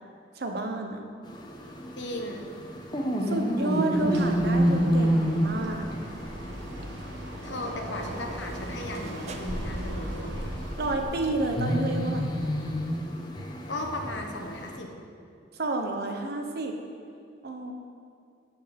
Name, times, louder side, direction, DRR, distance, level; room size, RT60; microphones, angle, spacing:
voice 1, 0.4-1.0 3.3-5.9 10.8-12.3 15.5-16.7 17.4-17.7, right 2 dB, 60° right, 4 dB, 0.9 m, -30 dB
sound 1, 1.2-14.8, equal, 25° left, 0.8 m, -30 dB
voice 2, 2.0-2.5 7.4-10.5 13.7-14.9, left 1 dB, 70° left, 3 dB, 1.0 m, -36 dB
sound 2, 3.9-11.0, right 1 dB, 75° right, 1.3 m, -38 dB
sound 3, 7.9-13.0, right 2 dB, 35° right, 0.4 m, -44 dB
12.0 x 4.4 x 5.2 m, 2.5 s
head